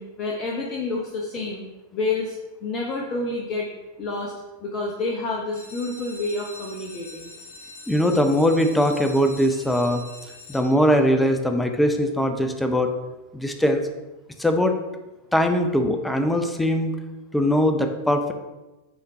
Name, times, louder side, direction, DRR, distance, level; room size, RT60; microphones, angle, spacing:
voice 1, 0.0-1.6 1.9-3.7 4.0-4.3 4.6-7.3, left 3 dB, 30° left, -1 dB, 0.9 m, -29 dB
sound 1, 5.5-11.1 11.8-12.2 12.6-12.7 13.0-13.1 13.5-13.6, left 2 dB, 60° left, 1.2 m, -44 dB
voice 2, 7.9-10.0 10.5-12.9 13.3-13.8 14.4-14.8 15.3-16.9 17.3-18.3, equal, 5° left, 6 dB, 0.6 m, -21 dB
9.2 x 3.7 x 2.7 m, 1.1 s
figure-of-eight pair, 90°, 0 cm